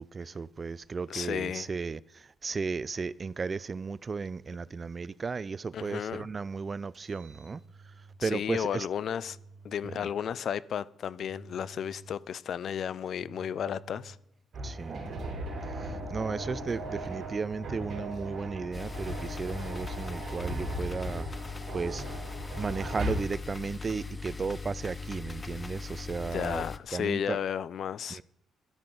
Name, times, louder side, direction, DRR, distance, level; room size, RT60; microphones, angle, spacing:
voice 1, 0.0-7.6 8.2-8.9 9.8-10.1 14.6-15.0 15.8-21.3 21.7-22.0 22.6-26.6 26.9-27.4 28.1-28.2, right 4 dB, 35° right, 0.3 m, -35 dB
voice 2, 1.1-1.7 5.7-6.3 8.2-9.4 9.6-14.2 26.3-28.2, left 8 dB, 60° left, 0.4 m, -33 dB
Engine, 6.9-8.3 9.1-10.3 11.1-12.3 13.1-14.4 15.1-16.4 17.0-18.3, right 3 dB, 75° right, 4.0 m, -51 dB
sound 1, 14.5-23.1, right 1 dB, 50° right, 4.1 m, -37 dB
sound 2, 18.7-26.8, left 4 dB, 25° left, 0.7 m, -40 dB
12.5 x 12.0 x 3.9 m
cardioid pair, 90°, 0 cm